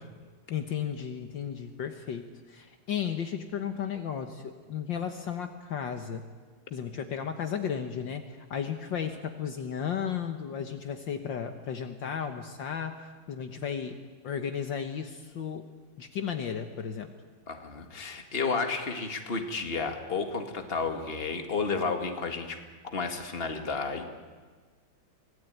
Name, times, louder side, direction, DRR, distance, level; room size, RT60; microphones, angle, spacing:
voice 1, 0.5-6.2 6.7-13.0 13.3-14.0 14.2-15.7 16.0-17.1, left 8 dB, 65° left, 7 dB, 1.8 m, -34 dB
voice 2, 17.5-22.6 22.8-24.0, left 4 dB, 30° left, 5 dB, 2.1 m, -32 dB
25.0 x 18.5 x 9.3 m, 1.5 s
omnidirectional pair, 2.3 m